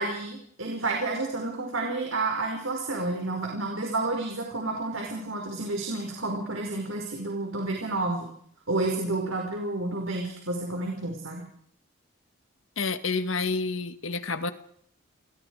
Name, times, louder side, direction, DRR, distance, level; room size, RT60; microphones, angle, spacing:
voice 1, 0.0-8.3 8.7-11.4, right 2 dB, 70° right, 5.3 m, -30 dB
voice 2, 12.8-14.5, left 4 dB, 70° left, 1.9 m, -29 dB
29.5 x 20.5 x 4.9 m
head